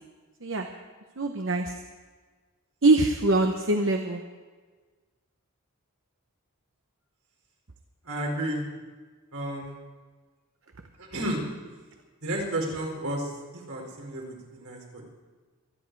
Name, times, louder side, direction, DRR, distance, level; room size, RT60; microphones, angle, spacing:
voice 1, 1.2-1.7 2.8-4.2, right 2 dB, 60° right, 4 dB, 0.9 m, -23 dB
voice 2, 8.0-8.6 9.3-9.8 11.0-11.4 12.2-15.0, right 1 dB, 75° right, 0 dB, 4.4 m, -32 dB
26.0 x 10.5 x 4.7 m, 1.4 s
head